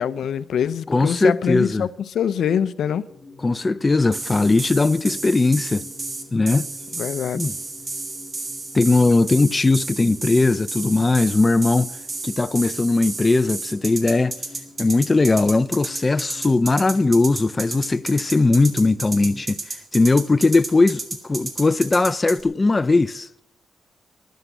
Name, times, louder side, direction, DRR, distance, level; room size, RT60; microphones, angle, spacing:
voice 1, 0.0-3.0 6.9-7.4, left 8 dB, 80° left, 0.6 m, -24 dB
voice 2, 0.9-1.9 3.4-5.9 6.3-6.7 7.3-7.5 8.7-11.9 12.2-14.4 14.8-19.6 19.9-23.4, left 3 dB, 25° left, 0.5 m, -19 dB
sound 1, 3.1-19.5, left 3 dB, 45° left, 3.2 m, -46 dB
sound 2, 4.1-22.4, right 3 dB, 35° right, 2.2 m, -32 dB
13.0 x 11.0 x 8.0 m
cardioid pair, 115°, 0 cm